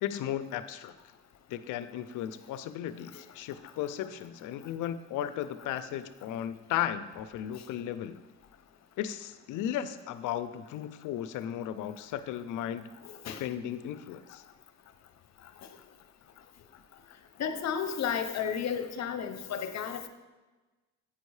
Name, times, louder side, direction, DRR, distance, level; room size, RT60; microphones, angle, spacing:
voice 1, 0.0-0.9 1.5-8.2 9.0-12.9 13.2-14.4, left 11 dB, 90° left, 13 dB, 0.5 m, -35 dB
voice 2, 13.0-13.4 15.6-15.7 17.4-20.1, left 7 dB, 60° left, 9 dB, 0.8 m, -33 dB
8.7 x 5.3 x 4.8 m, 1.2 s
cardioid pair, 90°, 30 cm